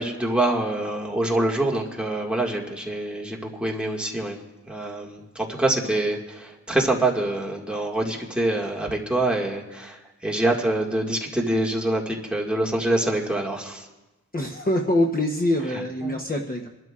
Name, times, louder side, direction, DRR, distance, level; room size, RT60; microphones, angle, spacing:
voice 1, 0.0-4.4 4.7-10.0 10.2-13.9 16.0-16.1, right 1 dB, 5° right, -2 dB, 1.9 m, -25 dB
voice 2, 14.3-16.7, left 1 dB, 30° left, 2 dB, 0.9 m, -24 dB
28.0 x 12.0 x 2.5 m, 1.1 s
wide cardioid pair, 110°, 31 cm